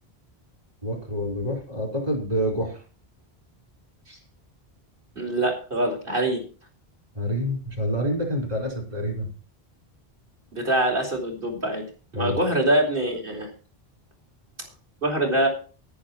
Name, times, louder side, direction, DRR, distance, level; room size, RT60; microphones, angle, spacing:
voice 1, 0.8-2.8 7.1-9.3 12.1-12.4, equal, 40° right, 1 dB, 4.8 m, -27 dB
voice 2, 5.2-6.4 10.5-11.8 12.1-13.5 15.0-15.5, right 1 dB, 55° right, 0 dB, 4.4 m, -24 dB
10.5 x 10.0 x 6.0 m, 0.37 s
omnidirectional pair, 1.1 m